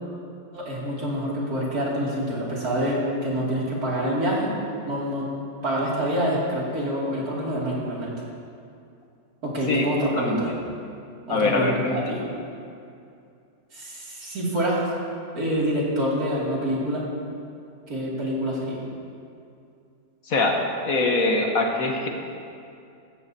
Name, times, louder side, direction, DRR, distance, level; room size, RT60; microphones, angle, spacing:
voice 1, 0.5-4.5 4.9-5.3 5.6-8.1 9.4-10.5 11.3-12.2 13.7-14.9 15.3-17.0 17.9-18.8, equal, 65° right, -5 dB, 3.0 m, -26 dB
voice 2, 11.3-11.7 20.3-20.5 20.8-22.1, left 3 dB, 60° left, 2 dB, 1.5 m, -22 dB
15.5 x 14.0 x 2.8 m, 2.5 s
omnidirectional pair, 1.7 m